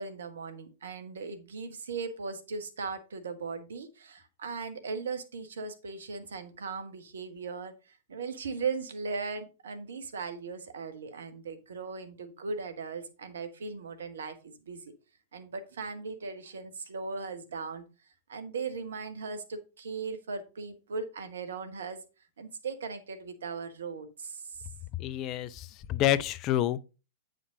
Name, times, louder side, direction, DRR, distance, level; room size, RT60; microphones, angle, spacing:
voice 1, 0.0-14.8 15.3-17.8 18.3-22.0 22.4-24.6, right 4 dB, 70° right, 1.2 m, -38 dB
voice 2, 25.0-26.8, left 13 dB, 35° left, 0.5 m, -28 dB
8.5 x 5.1 x 3.7 m
figure-of-eight pair, 100°, 0 cm